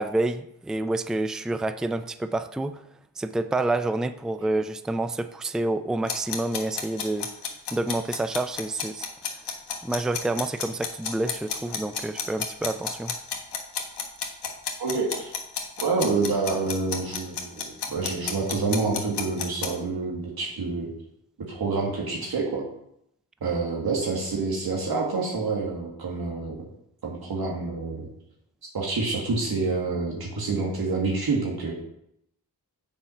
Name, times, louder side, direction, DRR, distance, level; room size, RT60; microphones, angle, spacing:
voice 1, 0.0-2.8 3.2-7.3 7.7-9.1 9.8-13.1, right 2 dB, ahead, 11 dB, 0.4 m, -28 dB
sound 1, 6.1-19.7, left 6 dB, 80° left, 1.4 m, -31 dB
voice 2, 14.8-15.3 15.8-20.9 21.4-22.6 23.4-26.6 27.0-28.1 28.7-31.7, right 3 dB, 65° right, -2 dB, 1.8 m, -27 dB
7.2 x 5.5 x 5.5 m, 0.76 s
cardioid pair, 60°, 40 cm